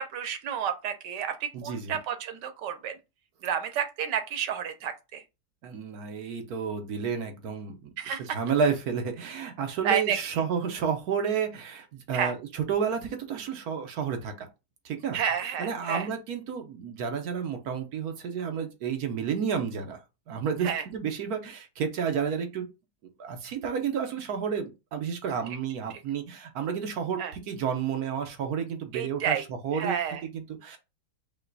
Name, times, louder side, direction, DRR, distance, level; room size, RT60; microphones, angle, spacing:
voice 1, 0.0-2.9 3.4-5.2 8.0-8.2 9.8-10.4 12.1-12.3 15.1-16.1 20.6-20.8 27.2-27.3 28.9-29.4 29.7-30.2, right 8 dB, 90° right, 1.4 m, -30 dB
voice 2, 1.5-2.0 5.6-7.9 8.3-14.5 14.8-15.2 15.6-20.0 20.3-22.7 23.2-29.9 30.3-30.8, right 6 dB, 65° right, 1.4 m, -31 dB
5.5 x 2.3 x 4.0 m
omnidirectional pair, 1.8 m